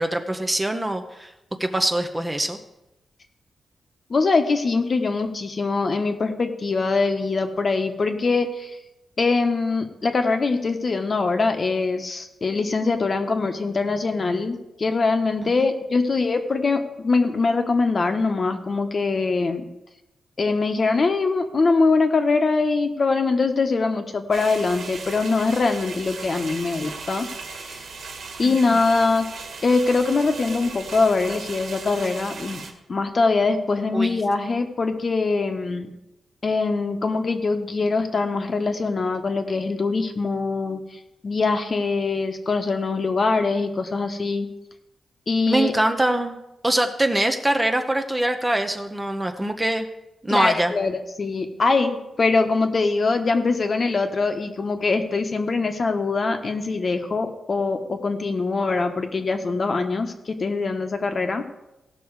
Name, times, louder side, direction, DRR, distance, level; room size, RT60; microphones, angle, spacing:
voice 1, 0.0-1.3 1.6-2.6 15.6-15.7 28.4-28.8 33.9-34.2 45.5-46.4 46.6-49.9 50.2-50.7, right 1 dB, 15° right, 6 dB, 0.8 m, -23 dB
voice 2, 4.1-8.7 9.2-19.6 20.4-27.3 27.6-27.8 28.4-29.3 29.6-32.6 32.9-35.9 36.4-40.8 41.2-44.5 45.3-45.7 50.3-61.4, left 3 dB, 40° left, 6 dB, 1.1 m, -23 dB
sound 1, 24.3-32.7, right 4 dB, 75° right, 1.7 m, -37 dB
17.0 x 6.1 x 4.8 m, 0.92 s
wide cardioid pair, 130°, 0 cm